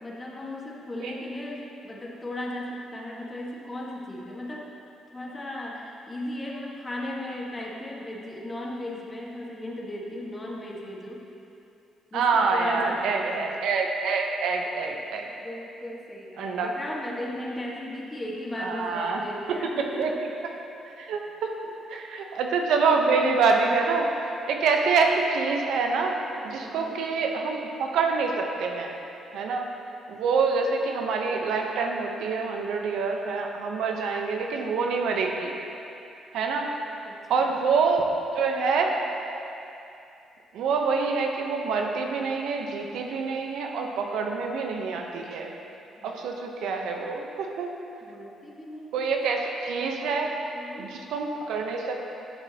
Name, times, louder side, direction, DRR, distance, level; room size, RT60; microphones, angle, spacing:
voice 1, 0.0-4.7 5.1-11.3 12.1-13.5 15.4-20.2 22.1-22.4 26.6-27.0 37.0-37.5 46.0-46.3 48.0-49.1 50.5-50.9, left 1 dB, 25° left, -3 dB, 1.4 m, -36 dB
voice 2, 12.1-15.3 16.4-16.7 18.6-19.2 19.5-19.6 20.0-20.1 21.0-21.5 21.9-24.1 24.5-26.2 26.4-28.9 29.3-29.7 30.1-35.6 36.3-36.7 37.3-38.1 38.3-38.9 40.5-45.5 46.0-47.7 48.9-50.3 50.8-52.1, right 4 dB, 80° right, 2 dB, 0.8 m, -26 dB
11.5 x 6.8 x 2.9 m, 2.7 s
cardioid pair, 90°, 0 cm